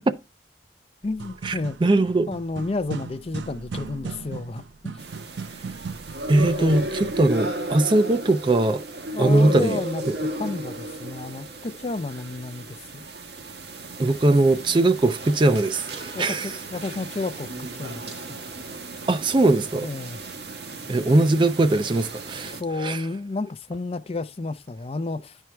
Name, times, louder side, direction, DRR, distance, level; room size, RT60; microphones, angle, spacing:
voice 1, 1.0-5.0 6.5-6.9 9.1-13.0 16.1-18.4 19.8-20.2 22.6-25.4, left 3 dB, 35° left, 0.4 m, -31 dB
sound 1, 1.0-7.3, right 4 dB, 85° right, 0.5 m, -37 dB
voice 2, 1.8-2.3 6.3-8.8 9.2-9.8 10.1-10.2 14.0-16.5 19.1-19.9 20.9-23.0, right 2 dB, 25° right, 0.4 m, -20 dB
sound 2, 5.0-22.6, right 1 dB, 70° right, 1.3 m, -34 dB
11.5 x 4.5 x 3.4 m
head